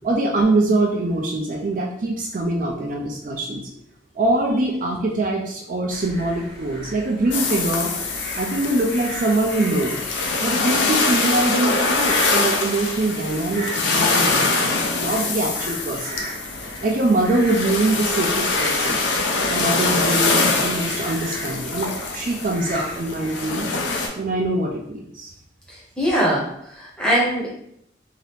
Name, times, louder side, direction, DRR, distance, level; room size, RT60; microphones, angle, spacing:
voice 1, 0.0-3.7 4.2-7.9 8.4-9.9 10.4-16.3 16.8-19.0 19.5-23.7 24.1-25.3, right 2 dB, 45° right, 0 dB, 0.4 m, -23 dB
sound 1, 5.9-24.0, equal, 60° left, 1.4 m, -36 dB
sound 2, 7.3-24.1, left 3 dB, 80° left, 0.5 m, -24 dB
voice 2, 25.7-27.5, equal, 5° left, -5 dB, 0.7 m, -22 dB
2.8 x 2.4 x 3.3 m, 0.72 s
head